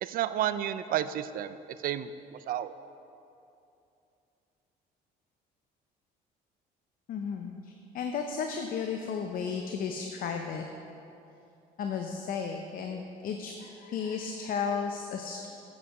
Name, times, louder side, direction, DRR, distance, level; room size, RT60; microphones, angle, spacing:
voice 1, 0.0-1.6 1.8-2.1 2.5-2.7, right 11 dB, 55° right, 13 dB, 0.4 m, -30 dB
voice 2, 7.1-10.6 11.8-15.5, left 6 dB, 55° left, 4 dB, 0.6 m, -34 dB
8.2 x 7.4 x 4.8 m, 2.7 s
cardioid pair, 110°, 17 cm